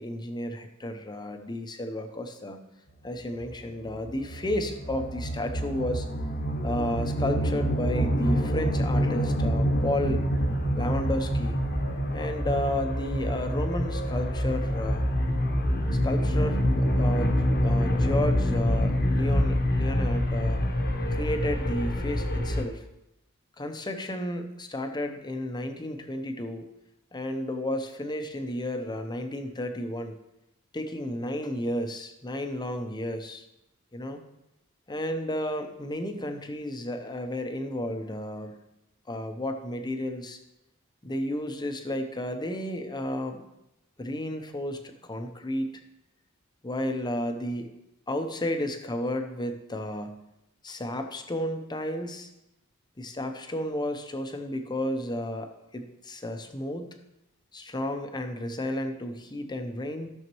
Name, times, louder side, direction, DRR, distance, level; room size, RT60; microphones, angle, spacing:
voice 1, 0.0-2.6 3.0-6.1 6.6-10.2 10.8-11.6 12.1-15.1 15.9-20.6 21.1-22.8 23.6-26.7 27.1-30.2 30.7-33.5 33.9-34.2 34.9-38.6 39.1-40.4 41.0-43.4 44.0-45.8 46.6-47.7 48.1-50.2 50.6-52.3 53.0-56.9 57.5-60.1, left 1 dB, 20° left, 6 dB, 0.7 m, -32 dB
sound 1, 3.4-22.6, equal, 45° left, 1.0 m, -26 dB
14.0 x 6.4 x 3.1 m, 0.87 s
head